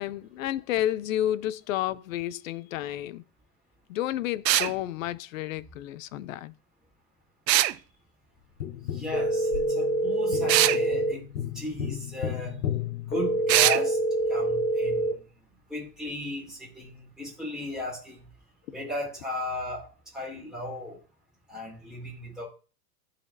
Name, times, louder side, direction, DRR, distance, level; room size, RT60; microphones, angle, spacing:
voice 1, 0.0-3.2 3.9-6.5, left 13 dB, 55° left, 0.5 m, -31 dB
sound 1, 4.5-4.7 7.5-7.8 10.5-10.8 13.5-13.8, right 14 dB, 85° right, 0.7 m, -21 dB
Tap, 8.6-13.9 16.5-16.6, left 10 dB, 75° left, 1.1 m, -35 dB
voice 2, 8.9-12.6 13.0-14.0 14.3-15.2 15.7-18.2 18.7-21.0 21.5-22.5, left 1 dB, ahead, 2.6 m, -36 dB
sound 2, 9.1-11.1 13.1-15.1, right 2 dB, 20° left, 1.5 m, -26 dB
12.0 x 4.1 x 2.7 m
supercardioid pair, 165°, 49 cm